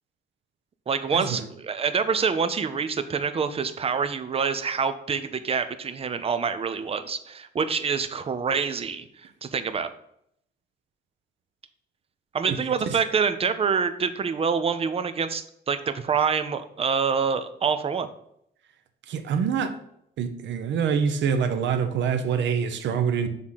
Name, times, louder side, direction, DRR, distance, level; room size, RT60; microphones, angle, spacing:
voice 1, 0.9-9.1 9.4-9.9 12.3-18.1, right 6 dB, 30° right, 0.5 m, -26 dB
voice 2, 19.1-19.7 20.2-23.3, right 7 dB, 75° right, 0.9 m, -25 dB
6.4 x 3.8 x 5.6 m
cardioid pair, 140°, 19 cm